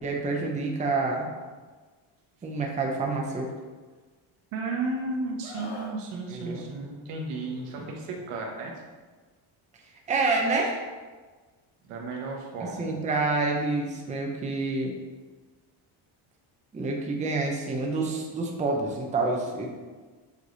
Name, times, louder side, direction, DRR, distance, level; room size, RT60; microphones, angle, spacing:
voice 1, 0.0-1.3 2.4-3.5 6.3-6.6 10.1-10.8 12.8-15.0 16.7-19.7, right 3 dB, 15° right, 0 dB, 0.5 m, -28 dB
voice 2, 4.5-8.7 11.8-12.9, right 3 dB, 85° right, 0 dB, 1.3 m, -33 dB
Screaming, 5.4-6.0 7.5-7.7, left 2 dB, 60° left, 1.0 m, -41 dB
7.4 x 3.2 x 4.0 m, 1.4 s
cardioid pair, 160°, 50 cm